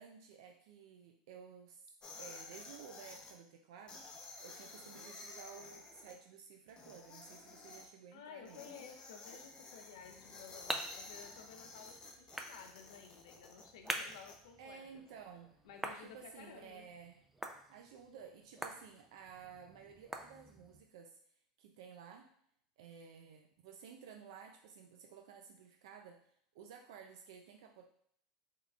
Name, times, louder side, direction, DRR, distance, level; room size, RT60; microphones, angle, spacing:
voice 1, 0.0-1.8 2.1-8.7 14.6-15.6 15.9-17.3 17.7-21.2 21.6-22.3 22.8-27.9, right 7 dB, 80° right, 4 dB, 0.4 m, -54 dB
sound 1, 2.0-3.3 3.9-6.1 6.7-7.9 8.5-14.4, left 3 dB, 30° left, 0.7 m, -52 dB
voice 2, 8.1-15.0 15.6-16.9, left 7 dB, 80° left, 4 dB, 0.6 m, -54 dB
sound 2, 10.0-20.8, right 1 dB, 5° right, 0.4 m, -47 dB
3.6 x 3.2 x 2.4 m, 0.65 s
supercardioid pair, 110°, 3 cm